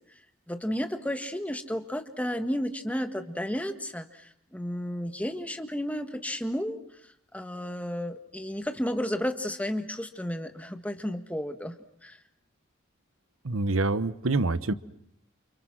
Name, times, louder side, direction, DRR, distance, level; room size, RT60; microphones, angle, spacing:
voice 1, 0.5-6.8 7.3-11.7 12.0-12.2, equal, 5° left, 7 dB, 1.7 m, -32 dB
voice 2, 13.4-14.7, right 2 dB, 85° right, 15 dB, 1.1 m, -26 dB
29.5 x 28.5 x 6.2 m, 0.69 s
head